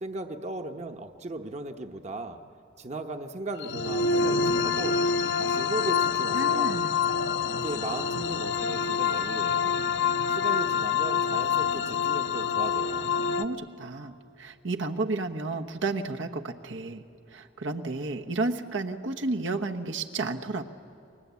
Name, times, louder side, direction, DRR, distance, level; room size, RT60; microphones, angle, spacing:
voice 1, 0.0-2.4 2.8-5.0 5.3-6.8 7.5-9.9 10.3-13.1, right 2 dB, 35° right, 6 dB, 0.9 m, -37 dB
sound 1, 3.6-13.4, left 6 dB, 70° left, 0.8 m, -26 dB
voice 2, 6.3-6.9 13.4-17.0 17.3-20.6, right 3 dB, 80° right, 4 dB, 1.2 m, -32 dB
29.5 x 21.5 x 8.3 m, 2.7 s
head